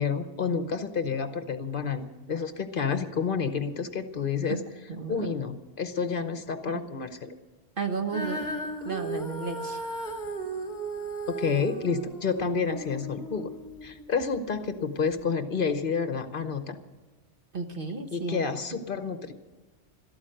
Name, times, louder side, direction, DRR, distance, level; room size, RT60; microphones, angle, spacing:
voice 1, 0.0-4.6 5.1-7.3 11.3-13.5 13.8-16.8 18.1-19.3, left 5 dB, 55° left, 9 dB, 1.0 m, -29 dB
voice 2, 4.9-5.3 6.7-6.8 7.8-8.5 8.8-9.8 17.5-18.4, right 4 dB, 50° right, 5 dB, 1.4 m, -33 dB
Female singing, 8.1-14.4 15.1-15.2, right 2 dB, 30° left, 2.0 m, -36 dB
13.0 x 13.0 x 7.7 m, 1.3 s
omnidirectional pair, 1.1 m